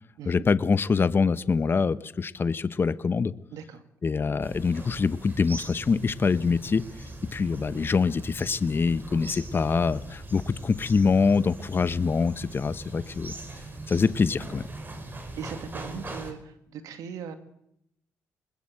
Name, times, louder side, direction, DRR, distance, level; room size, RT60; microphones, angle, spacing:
voice 1, 0.3-3.3 4.0-6.9 7.3-13.3 13.9-14.6, left 5 dB, 40° left, 14 dB, 1.0 m, -24 dB
voice 2, 3.5-3.8 9.3-9.5 15.4-17.4, right 6 dB, 80° right, 8 dB, 2.4 m, -39 dB
sound 1, 4.4-16.3, right 2 dB, 35° right, 5.2 m, -41 dB
21.5 x 20.5 x 7.8 m, 0.76 s
supercardioid pair, 65°, 6 cm